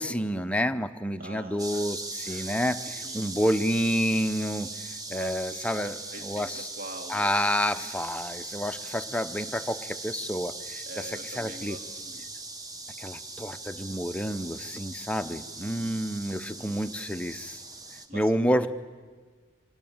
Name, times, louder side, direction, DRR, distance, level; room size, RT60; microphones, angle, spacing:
voice 1, 0.0-5.9 6.2-6.7 7.1-11.1 11.4-11.8 13.0-17.6 18.1-18.7, equal, 5° left, 9 dB, 0.7 m, -29 dB
voice 2, 1.2-2.0 2.2-2.5 3.0-3.3 5.1-7.3 10.9-12.3 15.2-16.0 16.3-16.9 17.7-18.7, right 1 dB, 45° right, 4 dB, 2.6 m, -45 dB
sound 1, 1.6-18.1, right 3 dB, 20° right, 1.2 m, -40 dB
25.0 x 18.5 x 8.8 m, 1.5 s
head